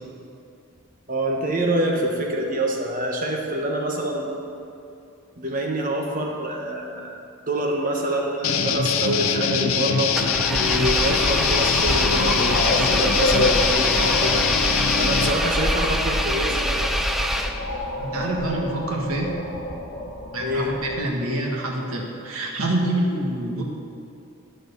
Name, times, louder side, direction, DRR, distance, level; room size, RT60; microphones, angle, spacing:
voice 1, 1.1-4.3 5.4-7.2 7.5-10.2 10.5-14.5 15.0-16.9 20.4-20.7, right 1 dB, 40° right, 0 dB, 1.3 m, -26 dB
sound 1, 8.4-15.3, left 7 dB, 75° left, 0.6 m, -23 dB
Engine, 10.1-17.9, equal, ahead, 0.3 m, -25 dB
sound 2, 10.7-21.0, left 1 dB, 50° left, 1.5 m, -29 dB
voice 2, 17.9-19.4 20.3-23.6, right 1 dB, 85° right, 0 dB, 1.5 m, -26 dB
9.3 x 6.6 x 6.8 m, 2.6 s
head